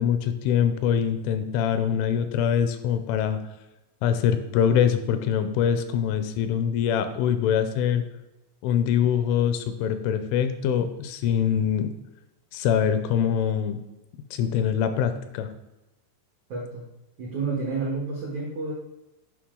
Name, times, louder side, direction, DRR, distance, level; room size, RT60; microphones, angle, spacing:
voice 1, 0.0-3.4 4.0-8.0 8.6-11.9 12.5-13.8 14.3-15.5, left 8 dB, 85° left, 9 dB, 3.0 m, -24 dB
voice 2, 16.5-16.8 17.2-18.7, right 4 dB, 85° right, -3 dB, 1.6 m, -30 dB
10.0 x 5.5 x 3.8 m, 0.99 s
omnidirectional pair, 5.8 m